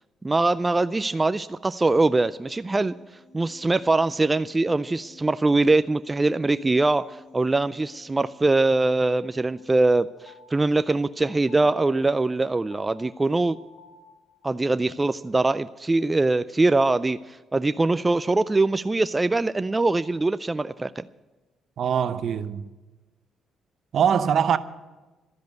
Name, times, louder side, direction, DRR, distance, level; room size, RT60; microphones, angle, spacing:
voice 1, 0.2-2.9 3.3-7.1 7.3-10.1 10.5-13.6 14.4-21.1, right 2 dB, 20° right, 0.3 m, -22 dB
sound 1, 2.0-8.8, left 2 dB, 50° left, 4.1 m, -53 dB
sound 2, 9.5-14.7, left 4 dB, 80° left, 1.6 m, -54 dB
voice 2, 21.8-22.6 23.9-24.6, right 8 dB, 60° right, 0.7 m, -22 dB
12.5 x 10.5 x 8.1 m
cardioid pair, 90°, 0 cm